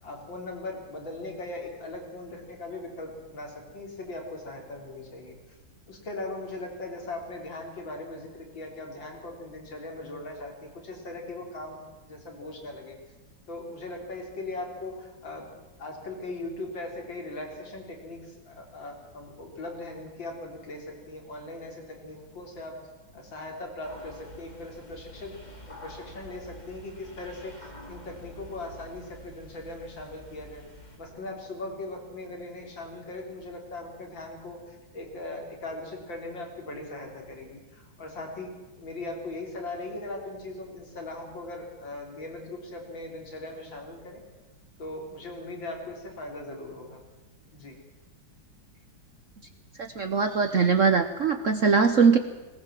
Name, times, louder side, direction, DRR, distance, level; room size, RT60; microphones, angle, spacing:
voice 1, 0.0-5.4 5.9-11.8 12.0-13.0 13.5-15.5 15.8-22.8 23.1-25.3 25.7-30.6 31.0-44.2 44.8-47.0 47.5-47.8, left 2 dB, 65° left, 1 dB, 4.2 m, -39 dB
sound 1, 23.8-31.0, equal, 20° left, 3.0 m, -48 dB
voice 2, 49.8-52.2, right 5 dB, 50° right, 8 dB, 1.0 m, -21 dB
20.0 x 18.5 x 7.6 m, 1.1 s
omnidirectional pair, 2.2 m